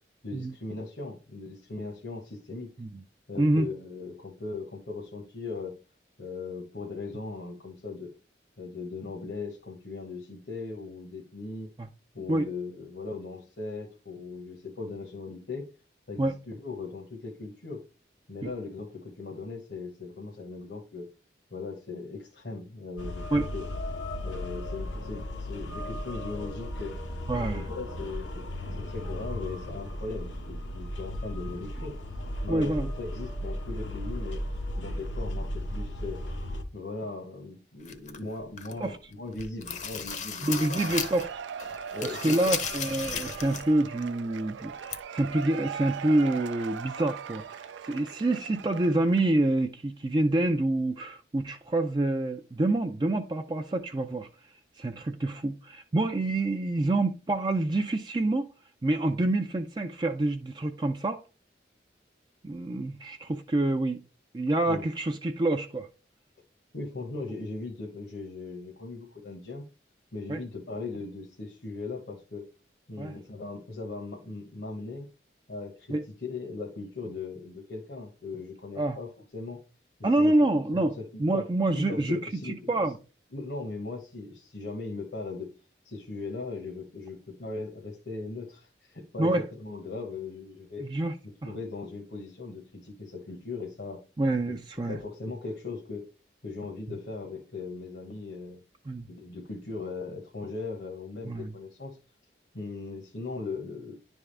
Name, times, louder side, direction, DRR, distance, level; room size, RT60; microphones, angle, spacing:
voice 1, 0.2-2.7 3.3-5.8 6.2-8.1 8.6-11.7 12.1-15.7 16.1-17.8 18.3-21.1 21.5-23.7 24.2-31.9 32.4-34.4 34.8-36.2 36.7-40.8 41.9-42.7 64.7-64.9 66.7-69.7 70.1-72.4 72.9-75.1 75.5-79.6 80.0-80.3 80.7-81.4 81.7-82.7 83.3-85.5 85.8-90.8 91.4-94.0 94.5-94.6 94.9-96.0 96.4-98.6 99.1-102.0 102.5-104.0, left 3 dB, 70° left, 1.2 m, -39 dB
voice 2, 3.4-3.7 11.8-11.9 12.3-12.5 16.2-16.3 18.4-18.5 23.3-23.5 27.3-27.7 32.5-32.9 38.8-39.0 40.4-41.3 42.0-54.3 54.8-58.5 58.8-61.2 62.4-64.0 64.3-65.9 70.3-70.4 73.0-73.1 75.9-76.0 78.8-79.0 80.0-83.0 89.2-89.4 90.8-91.1 91.4-91.5 94.2-95.0 98.9-99.1 101.2-101.5, right 2 dB, 25° right, 0.4 m, -27 dB
sound 1, 23.0-36.6, left 1 dB, 90° left, 1.1 m, -35 dB
sound 2, 37.8-38.9 39.3-41.3 41.6-43.7 44.0-44.1 44.9-45.0, left 6 dB, 40° left, 0.7 m, -35 dB
Cheering / Applause / Crowd, 40.5-49.4, right 7 dB, 85° right, 0.4 m, -40 dB
10.5 x 3.6 x 3.3 m
head